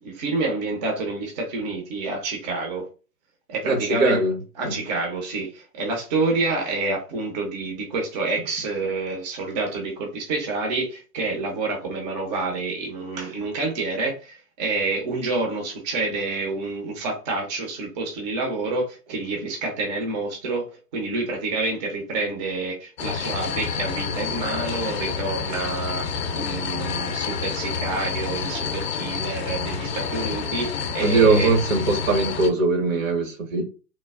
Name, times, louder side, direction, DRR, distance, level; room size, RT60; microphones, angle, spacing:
voice 1, 0.0-2.8 3.5-4.2 4.5-20.7 20.9-26.1 26.3-31.5, right 3 dB, 30° right, 0.6 m, -28 dB
voice 2, 3.6-4.4 4.6-4.7 31.0-33.6, right 3 dB, 55° right, 0.9 m, -20 dB
sound 1, 23.0-32.5, left 6 dB, 45° left, 0.4 m, -29 dB
3.1 x 2.0 x 2.3 m
figure-of-eight pair, 120°, 48 cm